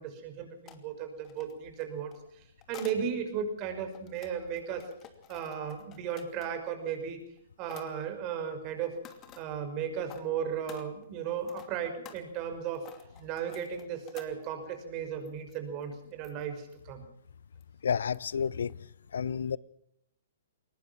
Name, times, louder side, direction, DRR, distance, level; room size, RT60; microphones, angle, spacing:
voice 1, 0.0-4.9 5.3-7.2 7.6-9.0 9.4-12.8 13.2-17.0, right 7 dB, 35° right, 5.5 m, -35 dB
sound 1, 0.6-0.8 1.2-3.0 3.7-6.7 7.2-7.4 7.7-7.9 8.8-9.4 10.0-10.2 10.6-14.7 15.2-15.6 15.8-15.9 16.2-16.4 16.7-16.8 17.6-17.7 18.1-18.4 18.7-18.8, left 10 dB, 25° left, 2.7 m, -51 dB
voice 2, 17.8-18.7 19.1-19.6, left 7 dB, 70° left, 0.7 m, -30 dB
22.0 x 19.5 x 6.1 m
figure-of-eight pair, 120°, 0 cm